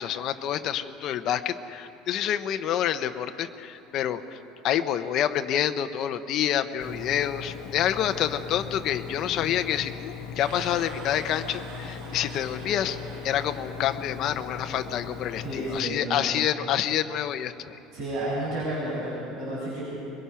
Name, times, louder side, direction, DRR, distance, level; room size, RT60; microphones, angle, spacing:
voice 1, 0.0-4.4 4.6-13.0 13.2-17.8, left 10 dB, 35° left, 8 dB, 0.7 m, -28 dB
Engine, 6.8-15.8, left 6 dB, 60° left, 1.7 m, -39 dB
sound 1, 10.3-14.5, right 4 dB, 70° right, 3.7 m, -45 dB
voice 2, 15.4-16.3 17.9-19.8, right 1 dB, 40° right, -7 dB, 7.0 m, -31 dB
25.0 x 22.0 x 5.7 m, 2.8 s
cardioid pair, 180°, 0 cm